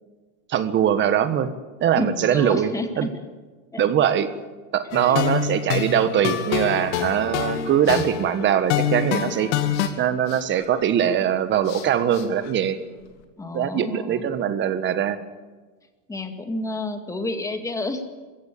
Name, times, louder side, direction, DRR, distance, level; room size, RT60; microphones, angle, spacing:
voice 1, 0.5-1.5 1.8-3.1 3.8-4.3 4.7-9.5 10.0-12.8 13.5-15.2, right 9 dB, 30° right, 12 dB, 1.4 m, -22 dB
voice 2, 2.0-3.1 3.7-3.8 5.0-5.2 13.4-14.3 16.1-18.0, left 2 dB, 10° left, 6 dB, 2.1 m, -30 dB
sound 1, 4.9-9.9, left 10 dB, 70° left, 2.0 m, -26 dB
sound 2, 7.8-13.2, left 8 dB, 45° left, 2.8 m, -42 dB
22.5 x 16.0 x 8.5 m, 1.3 s
supercardioid pair, 145°, 36 cm